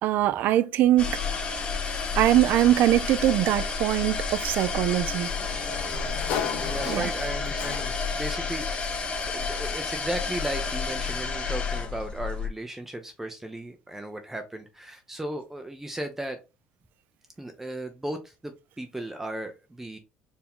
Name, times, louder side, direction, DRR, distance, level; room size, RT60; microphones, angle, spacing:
voice 1, 0.0-1.2 2.2-5.3 6.9-7.1, right 13 dB, 60° right, 0.4 m, -22 dB
sound 1, 1.0-12.5, left 4 dB, 30° left, 0.9 m, -31 dB
Sliding door, 4.3-8.2, left 7 dB, 70° left, 0.8 m, -36 dB
voice 2, 6.6-8.9 9.2-16.4 17.4-20.0, right 1 dB, 10° right, 0.5 m, -36 dB
4.6 x 2.7 x 3.5 m
cardioid pair, 115°, 3 cm